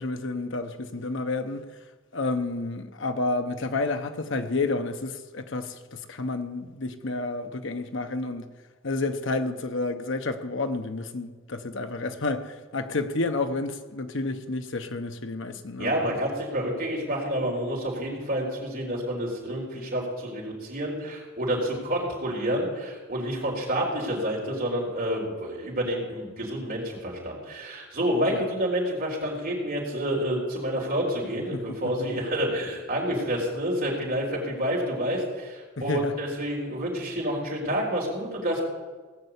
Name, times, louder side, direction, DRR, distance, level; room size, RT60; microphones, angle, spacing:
voice 1, 0.0-1.6 2.1-8.5 8.8-15.9 28.3-28.4 31.5-31.8 35.8-36.1, left 3 dB, 65° left, 1.0 m, -30 dB
voice 2, 15.8-38.6, equal, 50° right, 4.4 m, -29 dB
18.0 x 6.8 x 8.3 m
head